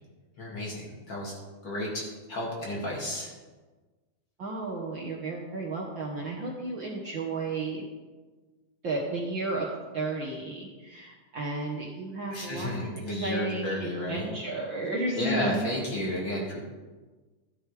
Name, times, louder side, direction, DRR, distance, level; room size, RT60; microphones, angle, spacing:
voice 1, 0.4-1.4 1.6-3.3 12.3-14.3 15.2-16.6, left 1 dB, 35° left, -3 dB, 2.7 m, -32 dB
voice 2, 4.4-7.8 8.8-9.7 9.9-12.7 13.1-15.6, right 2 dB, 60° right, -2 dB, 1.2 m, -33 dB
12.5 x 11.0 x 3.4 m, 1.3 s
omnidirectional pair, 3.8 m